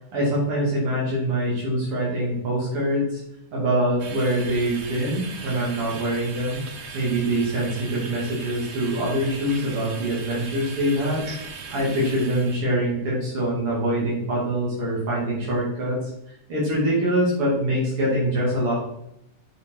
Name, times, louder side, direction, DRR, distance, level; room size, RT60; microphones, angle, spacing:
voice 1, 0.1-3.2 3.5-6.6 6.9-11.3 11.7-16.0 16.3-18.7, right 1 dB, 85° right, -6 dB, 3.3 m, -24 dB
sound 1, 4.0-12.6, right 5 dB, 65° right, 0.6 m, -39 dB
9.0 x 5.4 x 3.8 m, 0.81 s
omnidirectional pair, 2.4 m